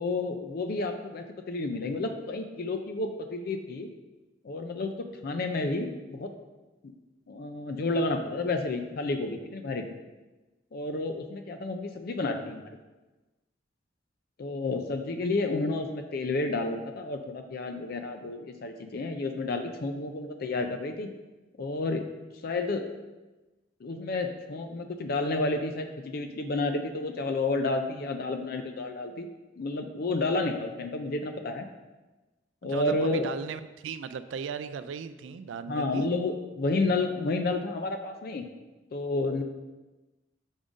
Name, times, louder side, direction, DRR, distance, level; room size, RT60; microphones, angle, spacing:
voice 1, 0.0-3.9 4.4-6.3 7.3-10.0 10.7-12.6 14.4-21.1 21.6-22.0 22.4-22.9 23.8-29.3 29.6-31.7 32.6-33.3 35.7-38.5 38.9-39.4, left 2 dB, 55° left, 6 dB, 0.4 m, -30 dB
voice 2, 32.6-36.1, right 6 dB, 80° right, 12 dB, 0.3 m, -37 dB
5.4 x 3.6 x 5.0 m, 1.1 s
head